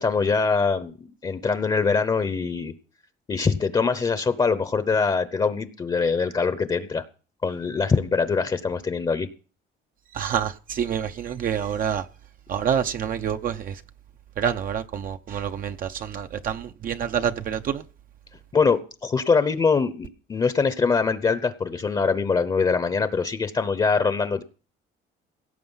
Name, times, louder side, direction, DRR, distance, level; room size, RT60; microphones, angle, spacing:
voice 1, 0.0-2.7 3.3-7.0 7.4-9.3 18.5-24.4, left 5 dB, 25° left, 0.8 m, -23 dB
voice 2, 10.1-12.0 12.5-13.8 14.4-17.8, right 8 dB, 45° right, 0.7 m, -27 dB
17.5 x 7.7 x 5.6 m
cardioid pair, 145°, 19 cm